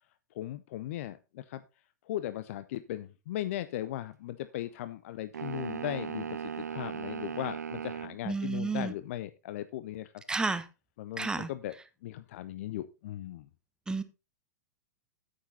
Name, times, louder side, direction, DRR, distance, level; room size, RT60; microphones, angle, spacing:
voice 1, 0.3-1.6 2.1-10.1 11.0-11.7 12.0-13.5, left 13 dB, 50° left, 0.6 m, -38 dB
sound 1, 5.3-8.2, right 7 dB, 75° right, 0.4 m, -37 dB
voice 2, 8.2-8.9 10.3-10.6 11.2-11.5 13.9-14.0, right 3 dB, 10° right, 1.0 m, -31 dB
9.6 x 8.1 x 4.1 m
figure-of-eight pair, 95°, 9 cm